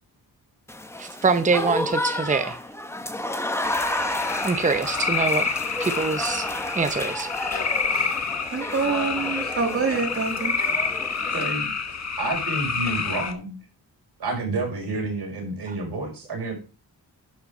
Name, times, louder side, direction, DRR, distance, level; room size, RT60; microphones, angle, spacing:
Applause / Crowd, 0.7-11.6, left 1 dB, 5° left, 0.9 m, -31 dB
voice 1, 1.0-2.6 4.4-5.4 5.8-6.5 6.8-7.3 15.7-15.8, right 4 dB, 20° right, 9 dB, 0.8 m, -24 dB
sound 1, 3.6-13.3, left 5 dB, 45° left, 1.3 m, -28 dB
voice 2, 7.8-8.1 8.5-10.5, right 4 dB, 35° right, 4 dB, 1.5 m, -26 dB
voice 3, 11.3-11.7 12.2-13.5 14.2-16.6, right 2 dB, 90° right, 0 dB, 5.2 m, -29 dB
11.5 x 5.9 x 5.0 m, 0.33 s
wide cardioid pair, 135°, 39 cm